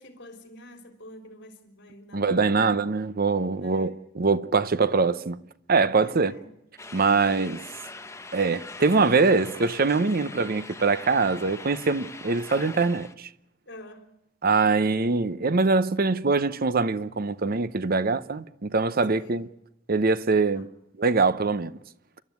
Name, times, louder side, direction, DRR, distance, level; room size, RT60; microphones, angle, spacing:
voice 1, 0.0-2.8 3.6-3.9 6.0-6.5 6.9-7.3 9.4-9.5 13.7-14.1 19.1-19.4 20.6-20.8, left 1 dB, 60° left, 3.8 m, -47 dB
voice 2, 2.1-5.4 5.7-6.3 6.9-7.6 8.3-13.3 14.4-19.5 19.9-20.7 21.0-21.7, right 4 dB, 50° right, 0.8 m, -23 dB
sound 1, 6.8-13.1, left 3 dB, 15° left, 1.1 m, -42 dB
29.5 x 12.5 x 9.4 m
head